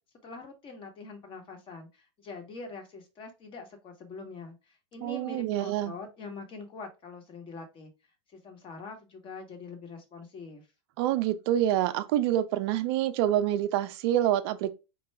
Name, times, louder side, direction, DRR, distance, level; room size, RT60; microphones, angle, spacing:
voice 1, 0.2-7.9 8.3-10.7, left 4 dB, 30° left, 1.1 m, -44 dB
voice 2, 5.0-5.9 11.0-14.7, right 12 dB, 55° right, 0.5 m, -27 dB
4.5 x 2.3 x 3.2 m
hypercardioid pair, 115°, 16 cm